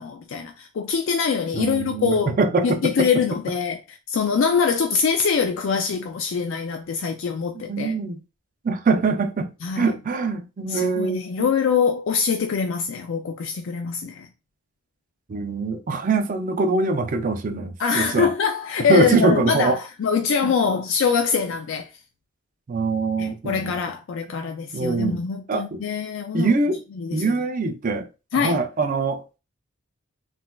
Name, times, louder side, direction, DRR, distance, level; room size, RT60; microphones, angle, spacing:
voice 1, 0.0-2.4 2.6-7.9 9.6-9.9 10.7-14.3 17.8-21.9 23.2-26.5 27.0-27.3 28.3-28.6, left 6 dB, 65° left, 0.4 m, -24 dB
voice 2, 1.5-3.1 7.7-8.2 8.6-11.5 15.3-18.3 18.9-19.8 20.4-20.5 22.7-23.8 24.7-25.2 25.5-25.8 26.3-26.8 27.1-28.1 28.3-29.4, right 3 dB, 40° right, 0.4 m, -23 dB
3.8 x 2.4 x 2.3 m
head